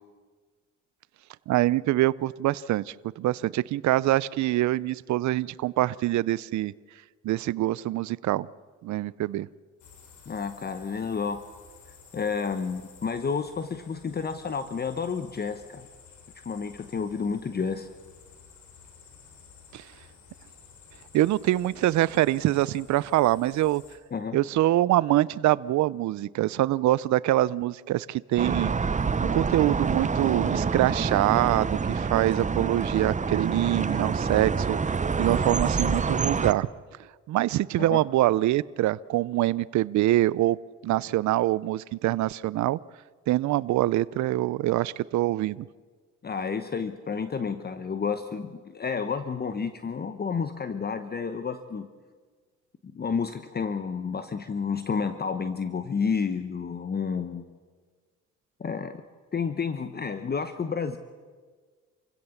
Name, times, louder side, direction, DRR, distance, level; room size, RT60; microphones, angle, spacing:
voice 1, 1.5-6.7 7.2-8.5 8.8-9.5 19.7-19.8 21.1-23.8 24.3-28.7 29.2-36.7 37.3-40.6 40.8-42.8 43.3-45.7, right 15 dB, 70° right, 20 dB, 0.5 m, -24 dB
sound 1, 9.8-24.0, left 6 dB, 75° left, 3.4 m, -53 dB
voice 2, 10.3-11.4 12.1-15.9 16.4-17.9 24.1-24.4 37.9-38.0 46.2-51.9 52.9-57.5 58.6-59.0 59.3-61.0, left 5 dB, 30° left, 10 dB, 1.0 m, -30 dB
sound 2, 28.4-36.5, right 5 dB, 25° right, 0.9 m, -27 dB
27.0 x 16.5 x 7.1 m, 1.5 s
cardioid pair, 90°, 30 cm